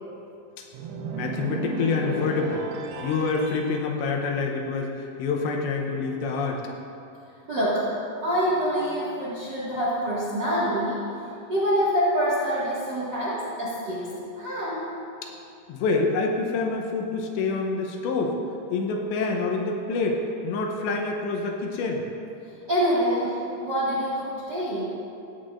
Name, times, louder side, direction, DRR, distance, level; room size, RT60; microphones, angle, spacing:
sound 1, 0.7-3.7, right 2 dB, 80° right, 2.9 m, -33 dB
voice 1, 1.1-2.6 3.0-6.6 15.7-18.4 18.7-22.0, left 4 dB, 85° left, 1 dB, 3.1 m, -27 dB
voice 2, 7.5-11.0 11.5-14.9 22.7-24.9, equal, 45° right, -10 dB, 1.3 m, -26 dB
16.5 x 8.3 x 2.5 m, 2.6 s
omnidirectional pair, 5.1 m